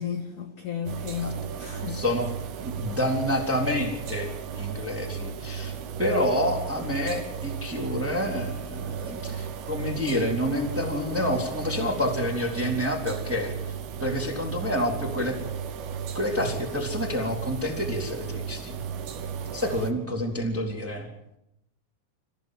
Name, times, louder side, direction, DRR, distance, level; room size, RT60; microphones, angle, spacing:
voice 1, 0.0-2.0, left 8 dB, 65° left, 2.1 m, -33 dB
sound 1, 0.9-19.9, right 7 dB, 65° right, 2.9 m, -35 dB
voice 2, 1.9-2.3 2.6-15.4 16.1-18.8 19.5-21.1, left 1 dB, 5° right, 2.6 m, -28 dB
28.0 x 15.0 x 7.6 m
omnidirectional pair, 5.8 m